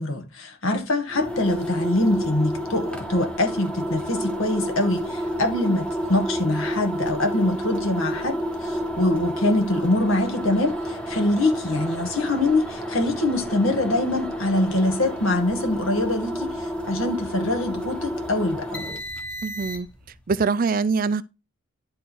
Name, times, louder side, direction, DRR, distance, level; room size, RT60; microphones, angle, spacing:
voice 1, 0.0-19.0, left 2 dB, 70° left, 1.9 m, -24 dB
sound 1, 1.1-20.1, equal, 5° left, 1.1 m, -30 dB
voice 2, 19.4-19.9 20.3-21.2, right 4 dB, 40° right, 0.4 m, -23 dB
11.0 x 3.7 x 6.2 m
head